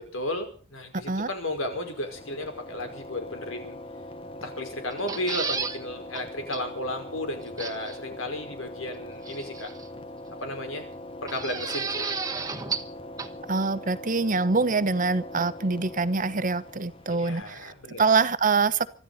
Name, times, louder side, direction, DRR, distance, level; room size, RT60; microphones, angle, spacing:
voice 1, 0.1-3.8 4.4-9.7 10.4-10.9 11.3-12.1 17.1-18.0, left 1 dB, 85° left, 5 dB, 5.2 m, -34 dB
sound 1, 1.5-17.4, left 1 dB, 30° left, 1.1 m, -42 dB
sound 2, 4.9-5.8 6.1-6.2 6.5-6.6 7.6-8.0 9.3-9.9 11.3-12.9 13.2-13.3, right 5 dB, 20° right, 1.4 m, -32 dB
voice 2, 13.5-18.9, right 4 dB, 40° right, 14 dB, 1.0 m, -25 dB
25.0 x 13.0 x 4.2 m, 0.40 s
head